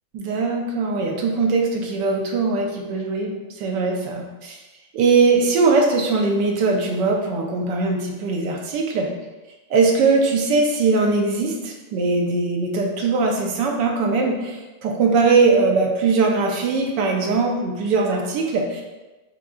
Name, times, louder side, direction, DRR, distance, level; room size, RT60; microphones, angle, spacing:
voice 1, 0.1-4.6 4.9-9.1 9.7-18.8, right 4 dB, 70° right, 1 dB, 1.3 m, -20 dB
6.0 x 3.6 x 2.3 m, 1.2 s
omnidirectional pair, 2.2 m